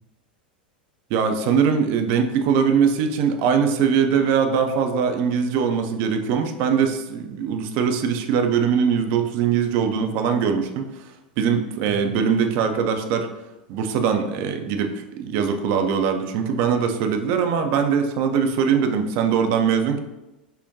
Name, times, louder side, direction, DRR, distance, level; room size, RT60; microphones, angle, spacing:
voice 1, 1.1-10.8 11.4-13.3 13.7-20.0, right 6 dB, 45° right, 6 dB, 0.4 m, -21 dB
5.8 x 2.1 x 2.7 m, 1.0 s
figure-of-eight pair, 85°, 5 cm